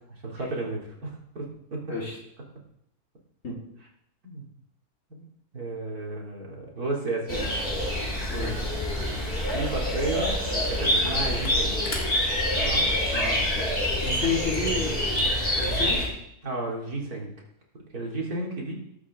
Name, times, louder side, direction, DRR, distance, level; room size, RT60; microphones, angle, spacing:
voice 1, 0.1-1.8 4.2-4.4 5.1-5.3 5.5-7.5 9.5-11.8 12.6-12.9 16.4-17.3 17.9-18.7, right 2 dB, 85° right, -2 dB, 3.2 m, -32 dB
sound 1, 7.3-16.1, left 1 dB, 40° left, 5.4 m, -26 dB
voice 2, 8.3-8.6 13.1-13.5 14.0-15.0 15.6-16.0, left 4 dB, 60° left, -4 dB, 4.0 m, -30 dB
Camera, 10.6-11.1 11.4-15.9, left 3 dB, 85° left, 2.4 m, -42 dB
19.5 x 8.3 x 3.6 m, 0.76 s
omnidirectional pair, 1.5 m